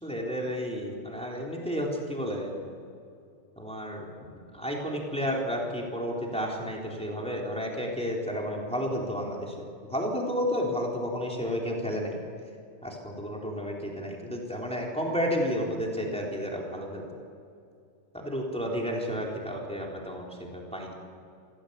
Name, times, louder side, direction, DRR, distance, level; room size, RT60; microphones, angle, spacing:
voice 1, 0.0-2.6 3.5-4.0 4.5-9.5 9.8-12.2 12.8-17.0 18.1-20.9, equal, ahead, -2 dB, 3.3 m, -31 dB
26.0 x 16.5 x 8.4 m, 2.5 s
omnidirectional pair, 4.7 m